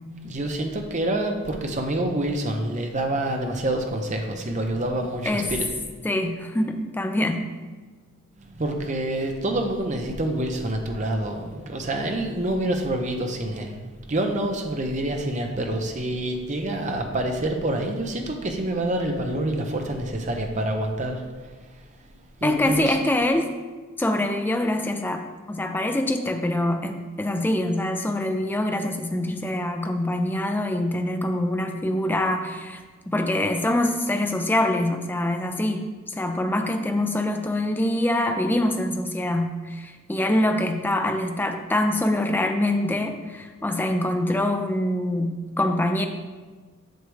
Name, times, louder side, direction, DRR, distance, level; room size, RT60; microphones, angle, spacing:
voice 1, 0.2-5.6 8.4-21.2 22.4-23.0, right 1 dB, 30° right, 3 dB, 0.7 m, -27 dB
voice 2, 6.0-7.5 22.4-23.5 24.0-46.1, left 1 dB, 10° left, 5 dB, 0.4 m, -25 dB
7.9 x 6.6 x 3.3 m, 1.4 s
head